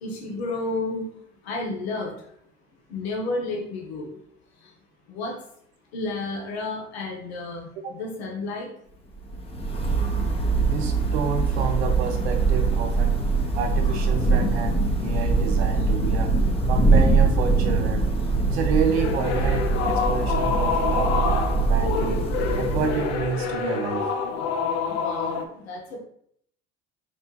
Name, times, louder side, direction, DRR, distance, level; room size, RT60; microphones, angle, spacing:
voice 1, 0.0-1.1 1.5-2.1 2.9-4.1 5.1-5.4 5.9-8.7 24.9-25.4 25.6-26.0, left 2 dB, 80° left, 0 dB, 0.9 m, -31 dB
Thunder / Rain, 9.2-23.5, right 3 dB, 20° left, 0.7 m, -23 dB
voice 2, 10.7-13.2 13.5-16.3 16.7-18.1 18.5-21.2 21.6-22.2 22.6-24.1, right 6 dB, 80° right, 4 dB, 0.7 m, -29 dB
sound 1, 18.9-25.5, left 6 dB, 55° left, 0.6 m, -27 dB
4.2 x 3.3 x 2.2 m, 0.67 s
hypercardioid pair, 75°, 31 cm